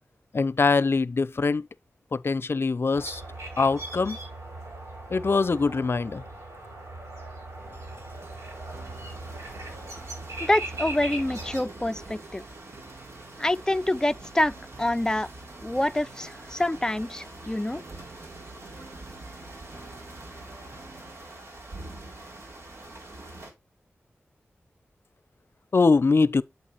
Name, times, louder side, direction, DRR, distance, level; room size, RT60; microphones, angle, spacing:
voice 1, 0.3-1.7 2.1-3.2 3.6-4.2 5.1-6.2 25.7-26.4, left 4 dB, 55° left, 0.6 m, -23 dB
sound 1, 2.9-11.6, right 2 dB, 85° right, 5.1 m, -39 dB
sound 2, 7.5-23.5, right 2 dB, 70° right, 3.3 m, -45 dB
sound 3, 7.6-21.2, right 2 dB, 55° right, 1.9 m, -50 dB
voice 2, 10.4-12.4 13.4-15.3 15.6-17.8, left 1 dB, 15° left, 0.5 m, -26 dB
8.4 x 8.0 x 3.1 m
cardioid pair, 55°, 5 cm